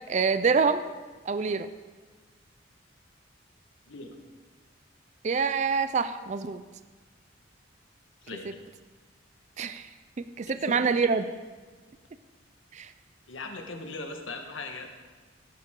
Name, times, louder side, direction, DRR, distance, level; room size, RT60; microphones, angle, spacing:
voice 1, 0.1-0.8 1.3-1.7 5.2-6.6 9.6-9.9 10.2-11.2 12.7-12.9, right 5 dB, 35° right, 11 dB, 0.4 m, -26 dB
voice 2, 3.9-4.2 8.2-8.6 10.5-10.8 13.3-14.9, left 2 dB, 80° left, 4 dB, 1.5 m, -39 dB
17.0 x 11.5 x 3.8 m, 1.4 s
head